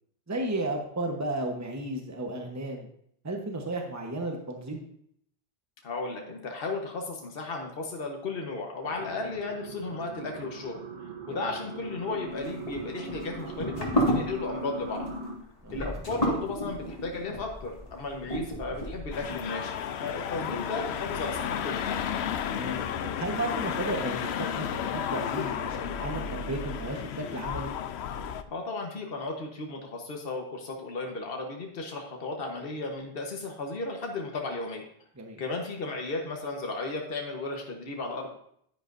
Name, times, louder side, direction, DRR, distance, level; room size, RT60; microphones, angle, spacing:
voice 1, 0.3-2.9 3.2-4.8 11.3-11.4 15.6-15.8 22.4-27.7 35.2-35.4, right 1 dB, 15° right, 2 dB, 1.1 m, -34 dB
voice 2, 5.8-10.8 11.3-15.1 15.7-22.0 28.5-34.8 35.4-38.3, left 3 dB, 60° left, 1 dB, 1.4 m, -35 dB
sound 1, 8.8-15.4, right 2 dB, 45° right, 1.1 m, -40 dB
sound 2, 12.3-19.3, equal, 35° left, 2.1 m, -32 dB
sound 3, 19.1-28.4, left 8 dB, 85° left, 0.9 m, -33 dB
10.5 x 9.8 x 2.6 m, 0.68 s
omnidirectional pair, 1.1 m